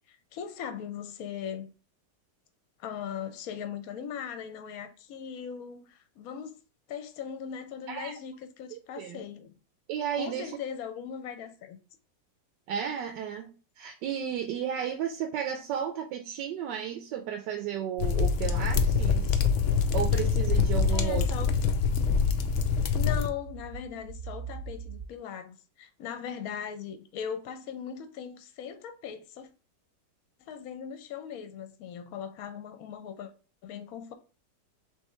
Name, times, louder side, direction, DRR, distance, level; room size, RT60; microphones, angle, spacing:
voice 1, 0.3-1.7 2.8-6.5 6.9-9.5 10.1-11.8 20.9-21.5 22.9-29.5 30.4-33.3 33.6-34.1, left 8 dB, 65° left, 1.0 m, -39 dB
voice 2, 8.7-9.2 9.9-10.6 12.7-19.4 19.9-21.3, right 9 dB, 80° right, 1.2 m, -33 dB
sound 1, 18.0-23.3, left 5 dB, 85° left, 0.6 m, -25 dB
sound 2, 23.1-25.1, right 4 dB, 65° right, 0.8 m, -42 dB
3.5 x 3.4 x 4.1 m
omnidirectional pair, 1.9 m